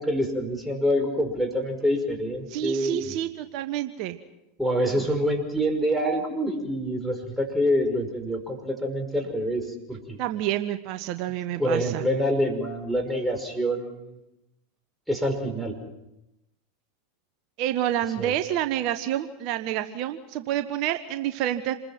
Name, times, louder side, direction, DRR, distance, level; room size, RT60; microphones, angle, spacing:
voice 1, 0.0-3.0 4.6-10.2 11.6-14.2 15.1-15.7 18.2-18.3, equal, ahead, 2 dB, 5.6 m, -26 dB
voice 2, 2.5-4.2 4.9-5.0 10.2-12.0 17.6-21.7, right 12 dB, 55° right, 9 dB, 1.1 m, -28 dB
27.5 x 21.0 x 5.9 m, 0.89 s
hypercardioid pair, 90°, 0 cm